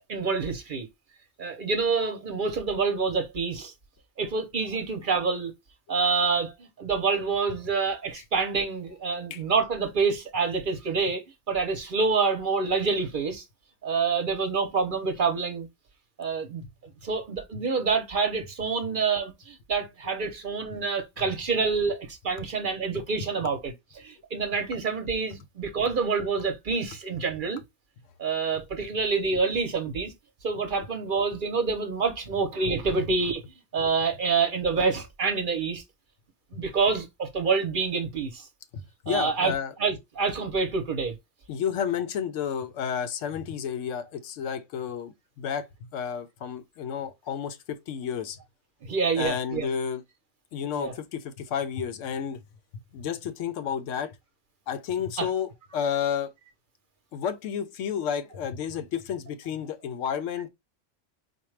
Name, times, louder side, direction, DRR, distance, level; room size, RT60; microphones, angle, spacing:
voice 1, 0.1-0.9 1.4-3.7 4.2-5.5 5.9-11.2 11.5-13.4 13.8-15.7 16.2-16.6 17.0-27.6 28.2-30.1 30.4-33.4 33.7-35.8 36.5-38.5 39.1-39.5 39.8-41.2 48.8-49.7 50.7-50.9 55.2-55.3, right 4 dB, 50° right, 0.8 m, -27 dB
voice 2, 38.7-39.7 41.5-48.4 49.2-50.0 50.5-52.4 52.9-54.1 54.7-56.3 57.1-60.5, left 8 dB, 85° left, 1.0 m, -31 dB
4.3 x 2.2 x 3.2 m
omnidirectional pair, 1.2 m